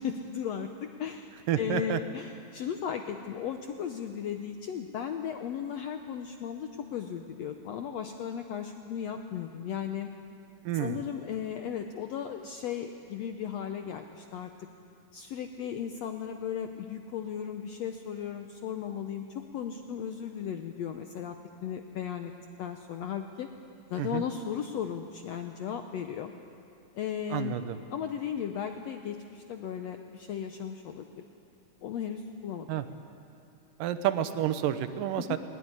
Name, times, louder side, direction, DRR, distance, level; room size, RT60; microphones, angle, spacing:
voice 1, 0.0-10.1 10.7-14.5 15.1-21.3 21.6-22.3 22.6-23.5 23.9-26.3 26.9-27.6 27.9-31.1 31.8-32.7 35.2-35.4, left 8 dB, 85° left, 6 dB, 1.5 m, -36 dB
voice 2, 1.5-2.0 10.7-11.0 24.0-24.2 27.3-27.8 32.7-32.8 33.8-35.4, right 11 dB, 75° right, 11 dB, 2.5 m, -29 dB
20.5 x 20.0 x 9.7 m, 2.5 s
omnidirectional pair, 4.1 m